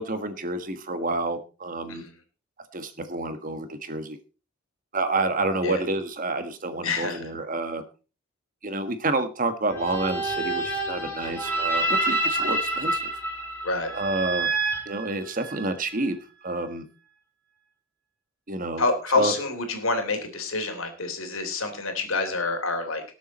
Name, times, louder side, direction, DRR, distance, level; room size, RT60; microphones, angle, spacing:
voice 1, 0.0-2.0 2.7-4.2 4.9-7.8 8.6-13.1 13.9-14.5 14.8-16.2 16.4-16.8 18.5-18.9 19.1-19.3, right 2 dB, 40° right, 9 dB, 1.4 m, -29 dB
voice 2, 6.8-7.2 13.6-13.9 18.8-23.0, left 3 dB, 75° left, 5 dB, 3.3 m, -27 dB
sound 1, 9.7-15.7, right 2 dB, 10° left, 4.5 m, -28 dB
19.5 x 7.2 x 4.2 m, 0.35 s
head